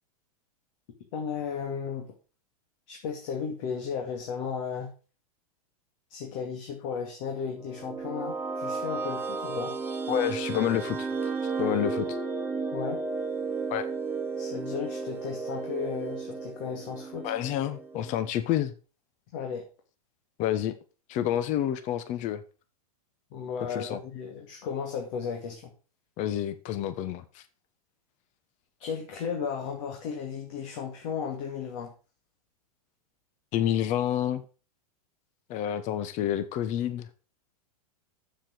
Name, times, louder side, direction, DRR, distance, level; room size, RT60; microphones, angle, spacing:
voice 1, 1.1-2.1 2.9-4.9 6.1-9.8 12.7-13.0 14.4-17.3 19.3-19.6 23.3-25.7 28.8-31.9, left 6 dB, 55° left, 2.4 m, -34 dB
sound 1, 7.5-18.3, right 4 dB, 10° right, 1.5 m, -33 dB
voice 2, 10.1-11.1 11.6-12.2 13.7-13.9 17.2-18.7 20.4-20.7 21.1-22.4 23.7-24.0 26.2-27.4 33.5-34.4 35.5-37.1, left 11 dB, 40° left, 1.1 m, -28 dB
7.4 x 7.4 x 6.2 m
hypercardioid pair, 110°, 19 cm